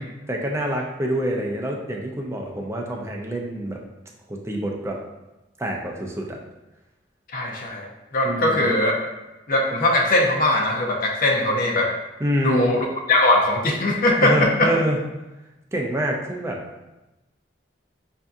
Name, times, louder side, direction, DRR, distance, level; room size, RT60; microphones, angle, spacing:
voice 1, 0.0-3.8 4.3-5.0 5.6-6.4 8.2-8.7 12.2-12.7 14.2-15.0 15.7-16.6, right 1 dB, 15° right, 0 dB, 0.5 m, -26 dB
voice 2, 7.3-7.9 8.1-9.0 9.5-11.9 12.4-14.7, left 1 dB, 50° left, 0 dB, 0.6 m, -20 dB
5.4 x 2.6 x 2.4 m, 1.0 s
head